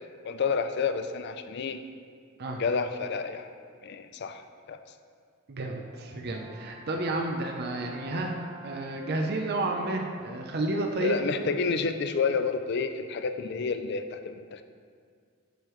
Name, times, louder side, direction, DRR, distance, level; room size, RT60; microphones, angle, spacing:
voice 1, 0.2-1.8 2.6-3.5 3.8-4.8 11.0-14.6, left 5 dB, 55° left, 9 dB, 0.4 m, -30 dB
voice 2, 5.5-8.3 8.6-11.5, right 2 dB, 55° right, 2 dB, 0.6 m, -31 dB
Brass instrument, 5.9-10.3, right 2 dB, 30° right, 1.5 m, -48 dB
7.9 x 6.5 x 3.1 m, 2.1 s
head